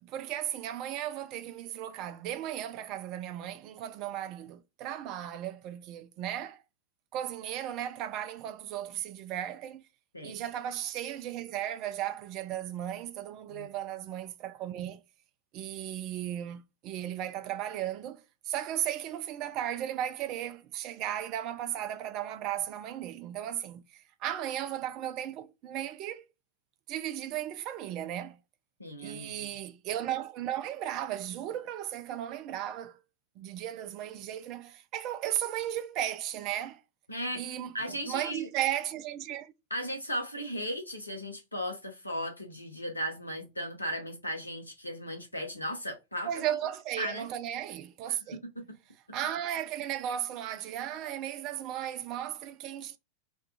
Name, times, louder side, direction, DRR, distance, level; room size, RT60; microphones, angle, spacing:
voice 1, 0.0-6.6 7.1-9.9 10.2-15.0 15.5-26.3 26.9-28.4 29.0-33.0 33.4-36.8 37.4-39.5 46.3-48.4 49.1-53.0, right 11 dB, 40° right, 0.3 m, -35 dB
voice 2, 28.8-29.5 37.1-37.5 37.7-38.5 39.7-46.3 47.0-47.3 48.1-48.2 48.6-48.7, equal, 85° left, 0.7 m, -36 dB
2.6 x 2.2 x 2.6 m
figure-of-eight pair, 90°, 0 cm